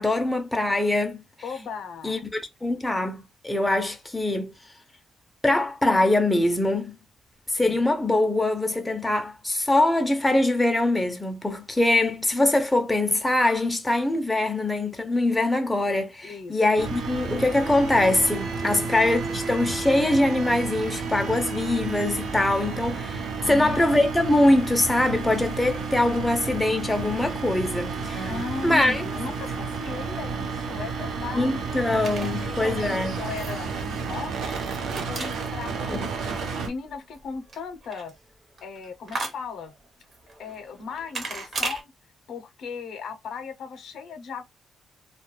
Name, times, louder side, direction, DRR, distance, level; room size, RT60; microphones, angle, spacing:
voice 1, 0.0-1.2 2.0-4.5 5.4-6.9 7.5-28.3 28.6-29.0 31.3-33.2 35.9-36.1, left 2 dB, 10° left, 0.4 m, -23 dB
voice 2, 1.4-2.2 7.6-7.8 16.2-16.6 18.6-18.9 23.4-24.0 28.3-31.7 32.2-34.6 35.0-38.1 38.6-39.7 40.4-41.9 42.3-44.4, left 5 dB, 70° left, 0.5 m, -37 dB
sound 1, 16.8-36.7, right 4 dB, 80° right, 0.6 m, -31 dB
sound 2, 30.6-41.8, right 3 dB, 40° right, 0.7 m, -39 dB
2.2 x 2.1 x 2.9 m
cardioid pair, 150°, 0 cm